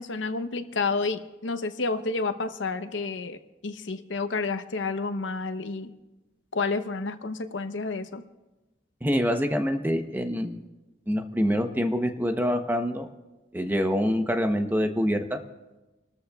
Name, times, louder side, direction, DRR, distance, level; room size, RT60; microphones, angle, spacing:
voice 1, 0.0-5.9 6.5-8.2, left 3 dB, 90° left, 9 dB, 0.8 m, -30 dB
voice 2, 9.0-10.6 11.1-13.1 13.5-15.4, equal, 10° right, 6 dB, 0.8 m, -25 dB
29.5 x 13.5 x 2.3 m, 1.1 s
head